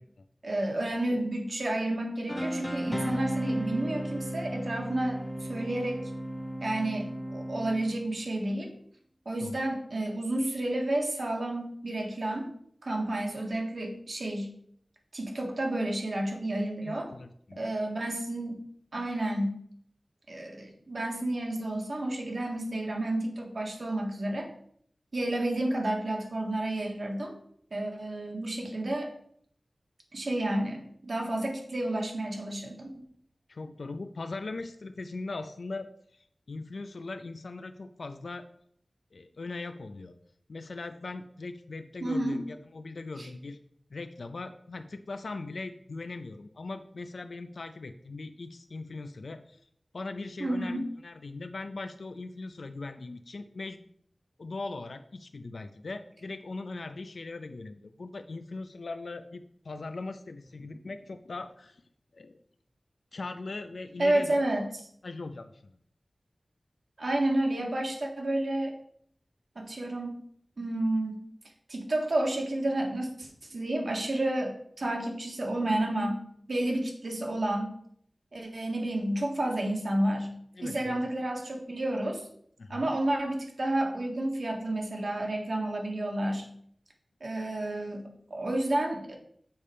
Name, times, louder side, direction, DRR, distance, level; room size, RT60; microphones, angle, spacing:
voice 1, 0.4-6.0 6.6-8.7 9.3-12.5 12.8-14.5 15.1-17.1 17.6-18.6 18.9-19.5 20.3-24.5 25.1-27.3 27.7-29.1 30.1-32.9 42.0-42.4 43.2-43.3 50.4-50.9 64.0-64.7 67.0-68.7 69.6-70.2 70.6-71.2 71.7-76.2 76.5-77.7 78.3-80.3 80.6-82.2 82.7-86.5 87.2-89.2, right 1 dB, 70° right, 1 dB, 1.6 m, -30 dB
sound 1, 2.3-8.2, equal, 10° left, 0.8 m, -34 dB
voice 2, 16.8-17.6 33.5-38.5 39.1-40.1 40.5-43.6 43.9-49.6 49.9-53.8 54.4-61.8 62.1-62.4 63.1-64.3 65.0-65.8 80.6-81.0 82.6-82.9, left 3 dB, 80° left, 8 dB, 0.4 m, -40 dB
7.0 x 5.0 x 4.3 m, 0.66 s
wide cardioid pair, 45°, 0 cm